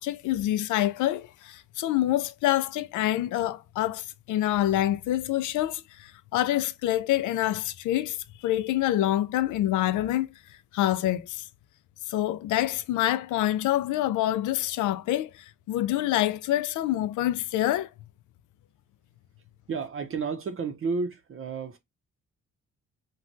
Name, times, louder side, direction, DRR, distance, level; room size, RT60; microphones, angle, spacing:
voice 1, 0.0-8.2 8.4-10.3 10.7-11.4 12.1-17.9, left 13 dB, 75° left, 0.4 m, -26 dB
voice 2, 19.7-21.8, right 4 dB, 45° right, 0.6 m, -31 dB
3.2 x 2.3 x 2.5 m
cardioid pair, 90°, 30 cm